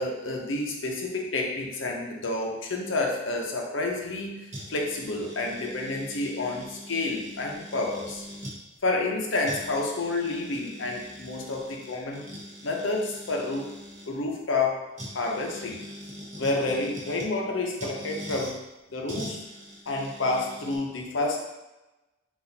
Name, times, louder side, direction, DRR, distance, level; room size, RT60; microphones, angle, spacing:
voice 1, 0.0-8.2 8.8-12.3 12.6-13.8 14.1-14.8 15.1-15.8 16.3-18.6 18.9-19.4 19.9-21.4, left 2 dB, 85° left, 0 dB, 0.8 m, -29 dB
sound 1, 4.5-8.6 9.1-9.2 9.4-14.1 15.0-17.3 17.8-18.5 19.1-20.8, equal, 40° right, 0.9 m, -42 dB
4.1 x 2.6 x 4.1 m, 1.0 s
head